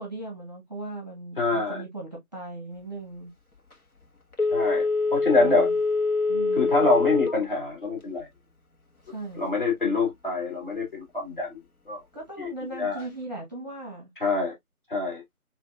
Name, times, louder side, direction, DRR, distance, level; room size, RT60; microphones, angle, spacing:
voice 1, 0.0-3.3 5.2-5.8 6.3-7.0 9.1-9.4 12.1-14.1, right 2 dB, 30° right, 1.2 m, -38 dB
voice 2, 1.4-1.8 4.5-5.7 6.5-8.3 9.3-11.6 11.9-12.0 12.4-12.5 12.8-13.1 14.2-14.5 14.9-15.2, left 3 dB, 35° left, 2.4 m, -25 dB
Telephone, 4.3-7.5 7.9-8.0, left 3 dB, 70° left, 1.5 m, -24 dB
4.9 x 2.9 x 2.4 m
figure-of-eight pair, 165°, 45 cm